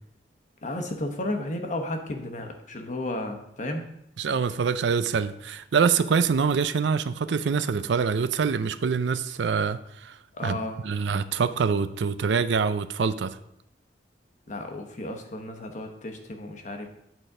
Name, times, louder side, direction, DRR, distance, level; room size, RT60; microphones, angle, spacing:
voice 1, 0.6-3.9 10.3-10.8 14.5-16.9, left 1 dB, 45° left, 4 dB, 1.0 m, -33 dB
voice 2, 4.2-13.4, right 6 dB, 85° right, 13 dB, 0.4 m, -25 dB
9.0 x 4.1 x 4.9 m, 0.79 s
head